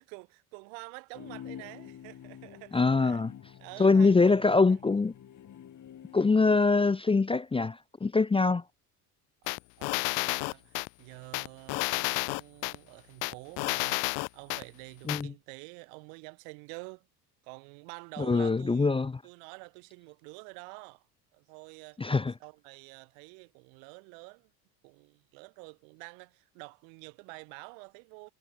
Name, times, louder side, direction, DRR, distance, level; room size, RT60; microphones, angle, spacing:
voice 1, 0.0-3.2 3.6-4.8 6.1-6.3 9.4-17.1 17.4-18.9 19.2-21.0 21.3-22.0 22.4-24.5 24.8-28.3, right 40 dB or more, 70° right, 4.5 m, -48 dB
sound 1, 1.1-6.9, left 9 dB, 40° left, 5.9 m, -48 dB
voice 2, 2.7-3.3 3.8-5.1 6.1-8.6 15.1-15.3 18.2-19.2 22.0-22.3, left 4 dB, 10° left, 0.8 m, -24 dB
sound 2, 9.5-10.9 11.3-12.8 13.2-14.6 15.1-15.2, left 31 dB, 65° left, 1.8 m, -30 dB
supercardioid pair, 95°, 46 cm